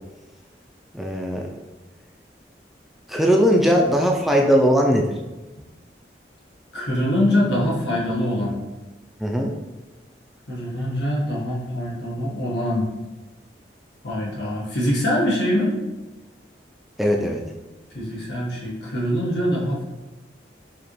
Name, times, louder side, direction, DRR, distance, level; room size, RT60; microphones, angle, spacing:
voice 1, 0.9-1.5 3.1-5.1 9.2-9.5 17.0-17.4, equal, ahead, 0 dB, 0.3 m, -19 dB
voice 2, 6.7-8.5 10.5-12.9 14.0-15.8 17.9-19.8, left 1 dB, 80° left, -5 dB, 1.3 m, -23 dB
5.0 x 2.9 x 3.1 m, 1.1 s
head